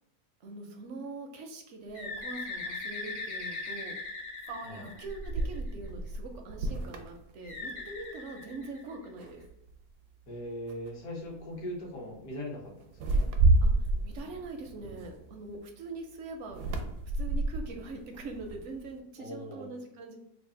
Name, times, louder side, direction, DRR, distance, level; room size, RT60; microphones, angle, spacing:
voice 1, 0.4-3.9 4.8-9.4 13.6-16.6 17.1-20.2, right 3 dB, 70° right, 3 dB, 0.7 m, -43 dB
Bird, 1.9-5.7 7.4-9.2, left 3 dB, 45° left, 0.8 m, -40 dB
sound 1, 2.2-2.3 4.4-8.1 8.4-8.7 9.2-9.8 10.7-10.9 11.2-11.5 12.9-15.5 16.5-18.9, right 2 dB, 85° right, 1.1 m, -30 dB
voice 2, 4.6-4.9 10.3-13.1 19.2-19.7, left 1 dB, 70° left, -1 dB, 1.4 m, -40 dB
3.2 x 2.4 x 3.7 m, 0.80 s
omnidirectional pair, 1.7 m